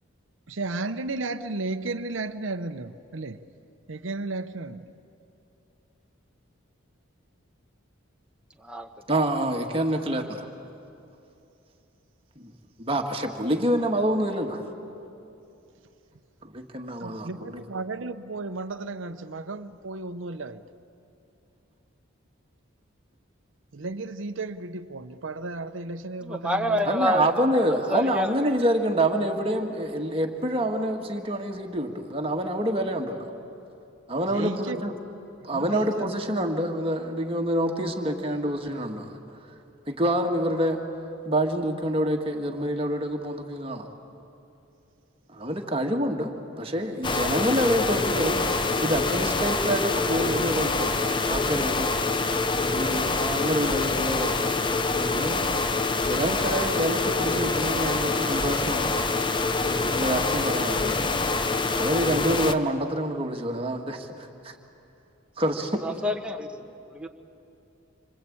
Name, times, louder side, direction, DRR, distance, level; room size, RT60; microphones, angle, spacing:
voice 1, 0.5-3.4 3.9-4.9 17.0-20.6 23.7-27.0 34.2-34.8 35.5-36.1, right 3 dB, 70° right, 8 dB, 0.8 m, -34 dB
voice 2, 9.1-10.5 12.4-12.5 12.8-14.6 16.4-17.6 26.9-33.3 34.1-34.9 35.4-39.2 39.9-40.8 41.3-43.9 45.3-51.9 52.7-55.5 56.0-59.1 59.9-61.0 61.8-64.5 65.4-65.8, right 1 dB, 25° right, 3 dB, 1.7 m, -27 dB
voice 3, 26.2-27.3 27.6-28.3 65.8-67.1, left 1 dB, 5° right, 4 dB, 1.2 m, -28 dB
sound 1, 47.0-62.5, left 3 dB, 25° left, 0.7 m, -25 dB
27.5 x 25.0 x 8.6 m, 2.7 s
head